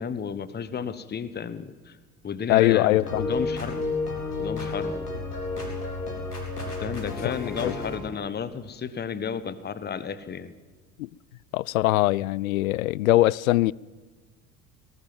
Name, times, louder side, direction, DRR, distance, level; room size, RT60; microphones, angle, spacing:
voice 1, 0.0-2.0 2.2-3.8 4.4-5.0 6.8-10.5, left 7 dB, 20° left, 1.2 m, -32 dB
voice 2, 2.5-3.3 7.2-7.3 7.6-7.7 11.0-11.1 11.5-13.7, left 17 dB, 65° left, 0.5 m, -22 dB
sound 1, 2.9-8.0, left 3 dB, 85° left, 4.1 m, -31 dB
19.0 x 18.0 x 7.6 m
figure-of-eight pair, 65°, 45 cm